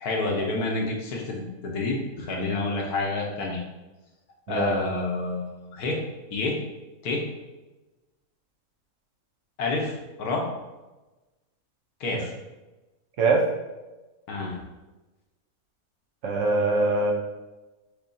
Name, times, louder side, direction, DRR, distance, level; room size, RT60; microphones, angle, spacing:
voice 1, 0.0-3.6 4.5-6.0 6.3-6.6 7.0-7.2 9.6-9.9 10.2-10.4 12.0-12.3 14.3-14.6, left 3 dB, 85° left, 0 dB, 1.4 m, -28 dB
voice 2, 16.2-17.1, right 3 dB, 65° right, 0 dB, 1.1 m, -22 dB
6.5 x 3.0 x 2.7 m, 1.1 s
omnidirectional pair, 1.6 m